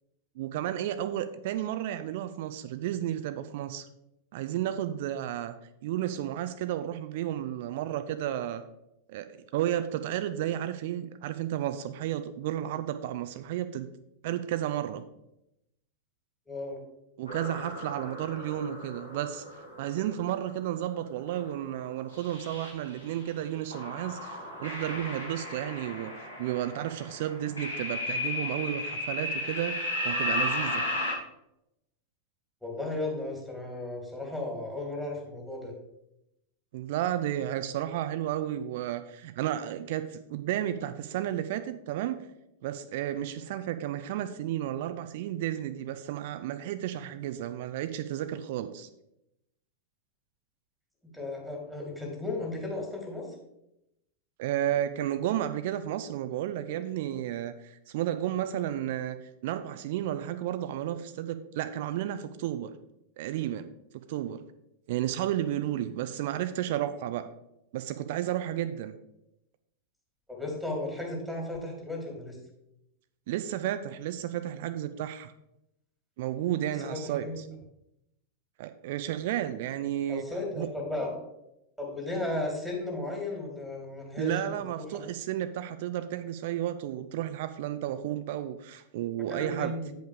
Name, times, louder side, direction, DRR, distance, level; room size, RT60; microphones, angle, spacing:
voice 1, 0.4-3.9 4.3-5.5 5.8-8.6 9.1-13.9 14.2-15.0 17.2-19.4 19.8-29.8 30.0-30.8 36.7-42.2 42.6-48.9 54.4-59.2 59.4-62.7 63.2-63.7 64.1-64.4 64.9-67.3 67.7-68.9 73.3-75.3 76.2-77.4 78.6-80.2 80.6-80.7 84.2-89.7, right 12 dB, 50° right, 10 dB, 0.5 m, -32 dB
voice 2, 16.5-16.8 32.6-35.7 51.1-53.3 70.3-72.4 76.9-77.4 80.1-81.1 81.8-85.0 89.3-89.9, left 2 dB, ahead, 1 dB, 2.8 m, -35 dB
sound 1, 17.3-20.5 21.2-21.5 21.8-23.2 23.7-31.1, left 2 dB, 90° left, 2.9 m, -35 dB
8.9 x 5.5 x 5.0 m, 0.84 s
figure-of-eight pair, 90°, 0 cm